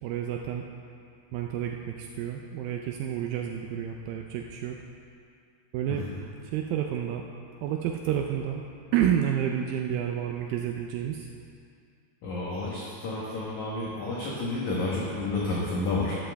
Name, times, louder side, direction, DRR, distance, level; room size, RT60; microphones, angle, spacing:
voice 1, 0.0-0.6 1.3-4.8 5.7-6.0 6.4-7.2 7.6-8.6 8.9-11.3, right 9 dB, 85° right, 2 dB, 2.0 m, -30 dB
voice 2, 12.2-16.2, left 2 dB, 60° left, -5 dB, 2.2 m, -30 dB
13.5 x 12.5 x 3.5 m, 2.4 s
omnidirectional pair, 4.8 m